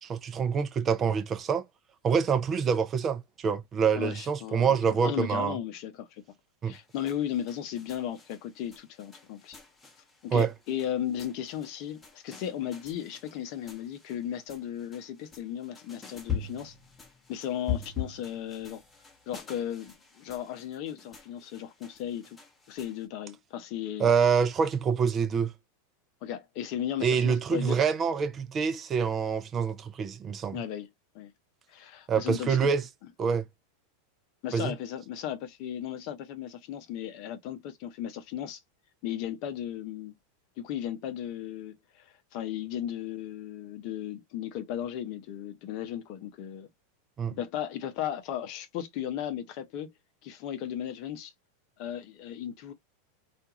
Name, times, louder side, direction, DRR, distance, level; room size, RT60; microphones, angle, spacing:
voice 1, 0.0-1.6 2.0-5.6 6.6-6.7 10.3-10.5 24.0-25.5 27.0-30.6 32.1-32.8 33.2-33.4 34.5-34.7 47.2-47.3, right 6 dB, 30° right, 0.5 m, -26 dB
voice 2, 4.0-6.2 6.6-9.6 10.2-16.7 17.3-18.8 19.3-22.4 22.7-24.1 26.2-27.8 30.5-30.9 31.1-31.3 31.7-32.7 34.4-38.6 39.0-40.1 40.6-46.7 47.3-49.9 50.2-51.3 51.8-52.7, left 10 dB, 55° left, 0.6 m, -36 dB
sound 1, 6.7-23.1, left 8 dB, 20° left, 1.0 m, -43 dB
2.5 x 2.3 x 2.9 m
hypercardioid pair, 100°, 0 cm